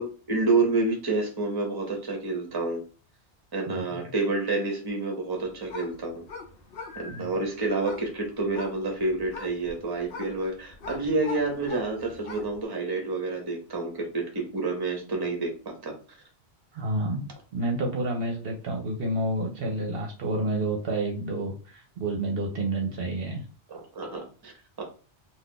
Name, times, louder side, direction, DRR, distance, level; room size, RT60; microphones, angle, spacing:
voice 1, 0.0-2.8 3.5-6.2 7.0-15.9 23.7-24.5 24.8-24.9, right 3 dB, 25° right, 2 dB, 0.7 m, -29 dB
voice 2, 3.7-4.1 7.1-7.3 16.7-23.4, right 1 dB, 60° right, 1 dB, 0.8 m, -29 dB
sound 1, 5.3-12.7, left 3 dB, 60° left, 0.8 m, -43 dB
2.4 x 2.3 x 3.6 m, 0.37 s
omnidirectional pair, 1.2 m